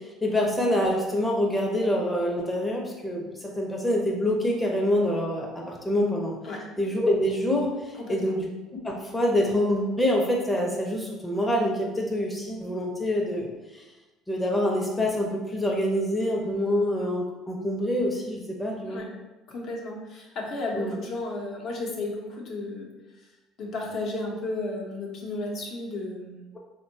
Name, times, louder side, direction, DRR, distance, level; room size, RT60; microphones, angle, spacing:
voice 1, 0.2-6.4 6.8-8.5 8.8-13.5 13.7-13.8 14.3-19.0 20.7-20.9, left 1 dB, 10° left, -2 dB, 0.6 m, -26 dB
voice 2, 7.9-8.3 18.9-19.1 19.5-23.3 23.6-26.4, left 2 dB, 60° left, -2 dB, 0.7 m, -33 dB
3.5 x 2.2 x 2.6 m, 1.1 s
supercardioid pair, 85°, 0 cm